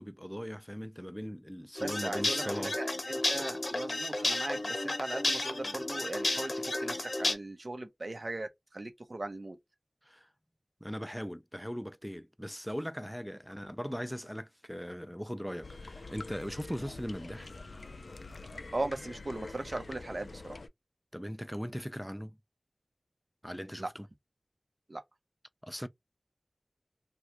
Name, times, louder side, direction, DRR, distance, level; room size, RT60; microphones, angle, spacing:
voice 1, 0.0-2.8 10.1-10.3 10.8-17.5 21.1-22.4 23.4-24.1 25.6-25.9, equal, ahead, 0.4 m, -39 dB
sound 1, 1.8-7.3, left 2 dB, 65° left, 0.8 m, -32 dB
voice 2, 1.8-9.6 18.7-20.6 23.8-23.9 24.9-25.0, right 2 dB, 60° right, 0.8 m, -38 dB
sound 2, 15.6-20.7, left 3 dB, 80° left, 0.3 m, -45 dB
2.9 x 2.4 x 3.2 m
wide cardioid pair, 50°, 0 cm